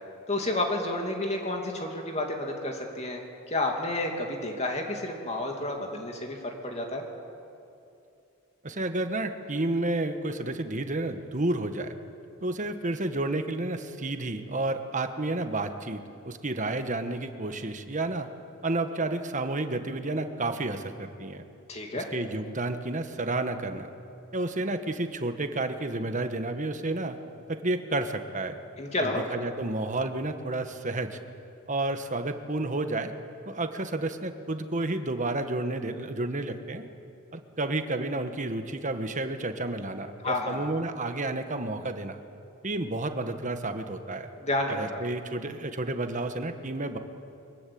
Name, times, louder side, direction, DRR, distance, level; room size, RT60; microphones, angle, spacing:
voice 1, 0.3-3.2 3.5-7.0 21.7-22.0 28.8-29.2 40.2-40.7 44.4-45.0, left 2 dB, 30° left, 2 dB, 2.6 m, -30 dB
voice 2, 8.6-11.9 12.4-18.3 18.6-21.4 21.9-23.9 24.3-27.2 27.5-28.6 29.0-31.2 31.7-33.1 33.4-36.9 37.3-42.2 42.6-44.3 44.7-47.0, right 2 dB, 35° right, 8 dB, 1.4 m, -31 dB
23.0 x 22.5 x 8.7 m, 2.6 s
head